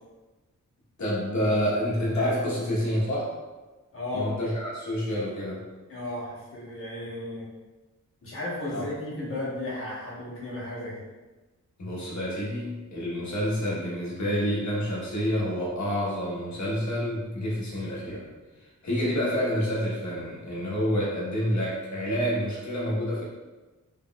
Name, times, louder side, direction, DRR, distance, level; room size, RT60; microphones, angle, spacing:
voice 1, 1.0-3.3 4.1-5.6 8.7-8.8 11.8-18.2 18.8-23.2, equal, 65° left, -6 dB, 1.3 m, -28 dB
voice 2, 3.9-4.3 5.9-7.4 8.2-11.0, left 2 dB, 45° left, -7 dB, 1.3 m, -34 dB
3.9 x 3.5 x 2.4 m, 1.2 s
wide cardioid pair, 145°, 31 cm